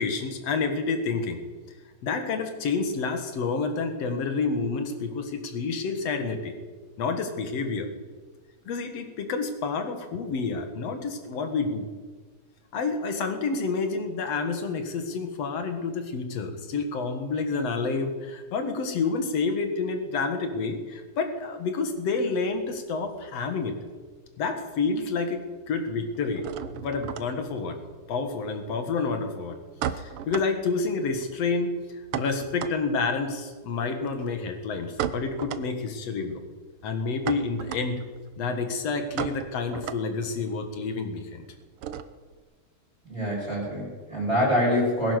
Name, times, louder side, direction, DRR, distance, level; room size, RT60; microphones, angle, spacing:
voice 1, 0.0-1.4 2.0-6.6 7.0-7.9 8.7-11.9 12.7-23.8 24.4-27.8 28.1-29.6 30.0-36.4 36.8-38.1 38.4-41.5, left 4 dB, 60° left, 6 dB, 2.6 m, -29 dB
sound 1, 22.5-24.2 24.4-25.1 25.4-42.4, right 9 dB, 85° right, 1.2 m, -37 dB
voice 2, 43.1-45.1, equal, ahead, -7 dB, 6.2 m, -25 dB
20.5 x 10.5 x 6.6 m, 1.4 s
omnidirectional pair, 3.5 m